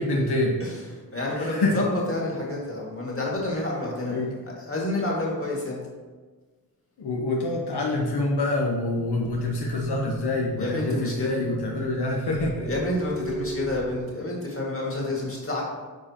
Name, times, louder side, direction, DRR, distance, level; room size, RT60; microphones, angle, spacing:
voice 1, 0.0-0.6 1.4-1.8 4.1-4.3 7.0-12.7, left 2 dB, 85° left, -1 dB, 0.9 m, -26 dB
voice 2, 0.6-4.1 4.6-5.8 10.6-11.3 12.6-15.6, left 2 dB, 35° left, -3 dB, 2.1 m, -29 dB
sound 1, 9.0-14.0, right 2 dB, 70° right, 1.4 m, -38 dB
9.2 x 4.9 x 2.9 m, 1.4 s
wide cardioid pair, 70°, 39 cm